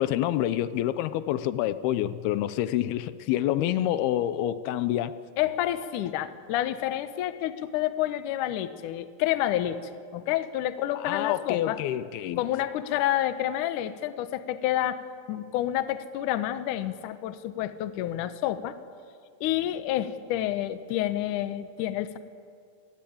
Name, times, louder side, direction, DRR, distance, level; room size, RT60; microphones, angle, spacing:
voice 1, 0.0-5.2 11.0-12.4, left 12 dB, 85° left, 13 dB, 2.7 m, -27 dB
voice 2, 5.4-9.8 10.1-11.8 12.4-15.0 15.3-18.8 19.4-22.2, left 13 dB, 70° left, 11 dB, 2.2 m, -29 dB
26.0 x 19.5 x 8.7 m, 2.2 s
omnidirectional pair, 4.4 m